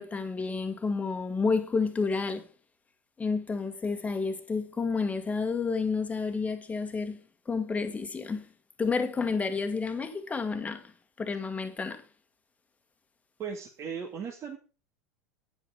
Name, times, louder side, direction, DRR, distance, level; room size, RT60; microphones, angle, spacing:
voice 1, 0.0-2.5 3.2-8.5 8.8-10.9 11.2-12.0, left 4 dB, 15° left, 1.9 m, -30 dB
voice 2, 13.4-14.6, right 6 dB, 35° right, 2.2 m, -37 dB
10.0 x 9.3 x 5.1 m
hypercardioid pair, 80°, 8 cm